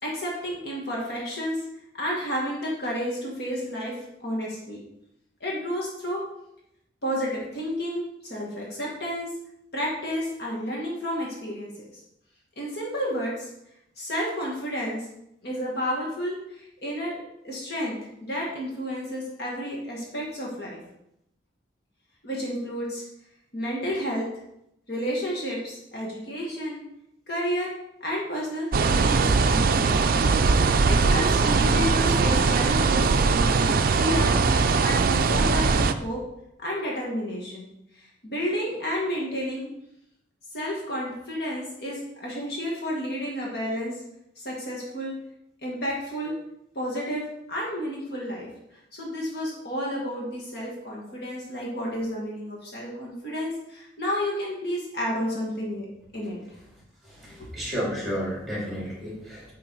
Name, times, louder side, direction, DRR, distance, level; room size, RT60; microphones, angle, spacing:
voice 1, 0.0-1.6 1.9-4.8 5.4-6.2 7.0-9.3 9.7-11.7 12.6-13.5 14.0-15.1 15.4-20.8 22.2-23.0 23.5-24.3 24.9-26.8 27.3-27.7 28.0-29.9 30.8-36.2 36.6-37.7 37.9-39.7 40.5-44.0 44.4-45.1 45.6-46.3 46.8-48.5 48.9-55.9 56.1-56.4, equal, 55° left, -3 dB, 1.8 m, -31 dB
sound 1, 28.7-35.9, right 4 dB, 50° right, 0.4 m, -21 dB
voice 2, 57.0-59.5, equal, ahead, -5 dB, 2.9 m, -32 dB
9.1 x 3.8 x 4.6 m, 0.80 s
head